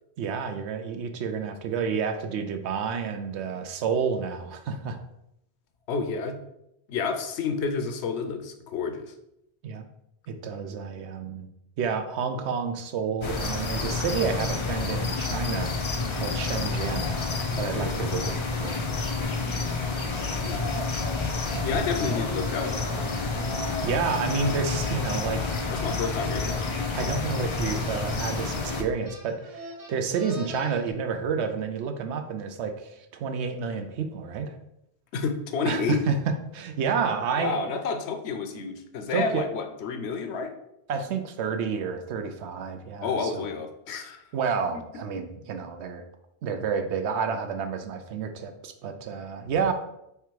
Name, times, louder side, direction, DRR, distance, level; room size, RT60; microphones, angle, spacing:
voice 1, 0.2-5.0 9.6-9.8 10.3-11.5 11.8-15.7 16.1-17.2 17.5-18.8 21.5-21.8 23.6-25.5 26.9-34.5 35.6-36.1 36.5-37.6 39.1-39.4 40.9-43.5 44.3-46.0 46.4-49.7, right 6 dB, 85° right, 7 dB, 0.9 m, -30 dB
voice 2, 5.9-6.4 6.9-9.1 20.5-20.7 21.6-23.1 25.7-26.7 35.1-36.0 37.4-40.5 43.0-44.2, left 5 dB, 80° left, 7 dB, 0.9 m, -30 dB
sound 1, 13.2-28.8, left 3 dB, 40° left, 0.4 m, -29 dB
sound 2, 27.8-28.0 28.3-30.9, equal, 40° right, 0.7 m, -43 dB
3.5 x 3.4 x 4.5 m, 0.81 s
omnidirectional pair, 1.1 m